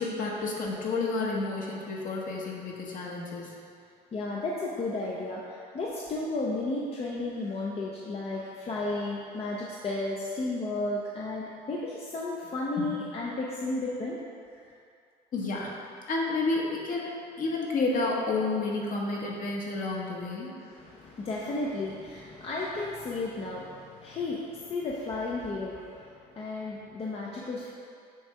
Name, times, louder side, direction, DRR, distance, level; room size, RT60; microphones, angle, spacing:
voice 1, 0.0-3.5 12.8-12.9 15.3-15.7 16.1-20.5, left 3 dB, 50° left, -3 dB, 1.3 m, -30 dB
voice 2, 4.1-14.2 14.5-14.7 20.6-27.7, left 2 dB, 35° left, -4 dB, 0.7 m, -33 dB
7.1 x 3.3 x 4.8 m, 2.4 s
cardioid pair, 110°, 17 cm